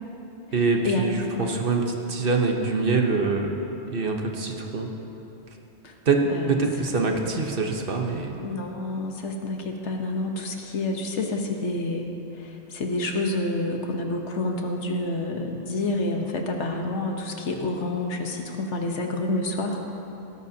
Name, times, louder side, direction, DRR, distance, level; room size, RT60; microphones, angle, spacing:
voice 1, 0.5-3.5 3.9-4.9 6.1-6.2 6.5-8.4, right 4 dB, 55° right, 2 dB, 1.1 m, -24 dB
voice 2, 7.0-7.4 8.4-12.1 12.4-19.8, left 2 dB, 80° left, 3 dB, 1.4 m, -28 dB
16.5 x 13.5 x 2.8 m, 3.0 s
omnidirectional pair, 1.2 m